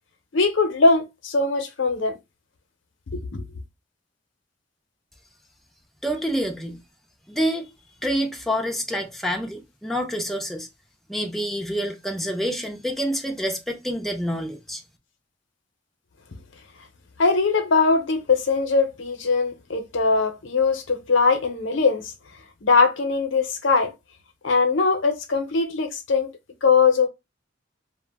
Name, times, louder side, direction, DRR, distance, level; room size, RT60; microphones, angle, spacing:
voice 1, 0.3-2.2 3.1-3.4 17.2-22.1 22.6-23.9 24.4-26.3 26.6-27.1, left 4 dB, 75° left, 0.7 m, -21 dB
voice 2, 6.0-6.8 7.3-7.7 8.0-10.7 11.1-14.8, equal, ahead, 0.4 m, -27 dB
2.4 x 2.1 x 3.4 m
head